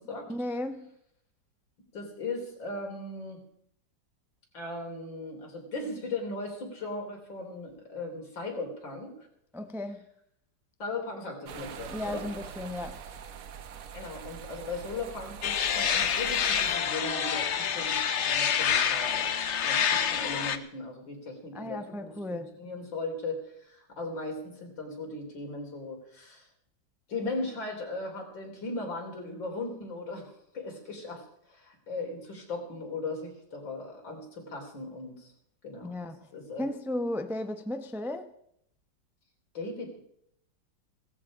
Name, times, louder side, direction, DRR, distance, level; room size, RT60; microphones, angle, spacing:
voice 1, 0.3-0.9 9.5-10.1 11.9-13.0 21.5-22.5 35.8-36.3 36.6-38.3, left 1 dB, 5° right, 8 dB, 0.4 m, -35 dB
voice 2, 1.9-3.4 4.5-9.1 10.8-12.3 13.9-26.5 27.1-35.3 35.6-35.9 36.3-36.7 39.5-40.0, left 2 dB, 85° left, 1 dB, 4.3 m, -38 dB
sound 1, 11.5-16.8, right 7 dB, 55° right, 1.1 m, -43 dB
sound 2, 15.4-20.6, left 8 dB, 50° left, 0.9 m, -27 dB
17.0 x 14.5 x 5.0 m, 0.72 s
omnidirectional pair, 2.0 m